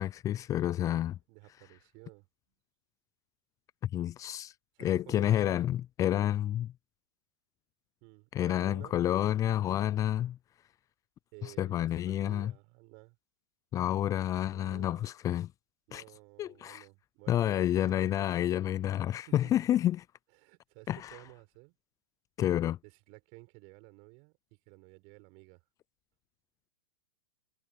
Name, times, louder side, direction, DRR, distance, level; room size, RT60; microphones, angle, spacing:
voice 1, 0.0-1.1 3.9-4.5 4.8-6.7 8.3-10.4 11.4-12.5 13.7-15.5 15.9-16.0 16.4-16.8 17.3-20.0 20.9-21.2 22.4-22.8, left 12 dB, 25° left, 0.7 m, -29 dB
voice 2, 1.3-2.3 4.7-5.6 8.0-9.0 11.3-13.2 14.5-15.1 15.9-18.3 19.3-19.7 20.3-21.8 22.8-25.6, right 32 dB, 45° right, 6.5 m, -54 dB
hypercardioid pair, 110°, 13 cm